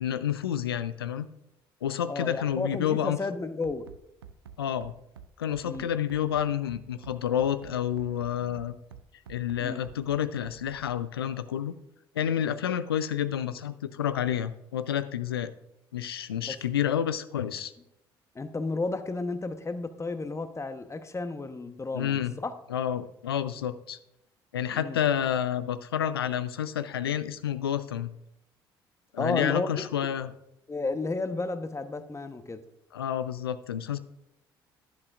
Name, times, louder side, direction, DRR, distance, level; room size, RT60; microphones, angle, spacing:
voice 1, 0.0-1.3 1.8-3.2 4.6-4.9 5.4-8.7 9.3-11.7 12.2-15.5 15.9-17.7 21.9-22.3 22.7-24.0 24.5-28.1 29.1-30.3 32.9-34.0, left 10 dB, 85° left, 14 dB, 0.5 m, -29 dB
voice 2, 2.1-3.9 5.6-5.9 9.6-9.8 16.5-16.6 18.3-22.5 24.7-25.0 29.2-30.2 30.7-32.6, left 3 dB, 25° left, 10 dB, 1.0 m, -32 dB
Bass drum, 3.6-11.0, right 7 dB, 85° right, 0.5 m, -48 dB
11.5 x 11.0 x 2.5 m, 0.82 s
figure-of-eight pair, 50°, 12 cm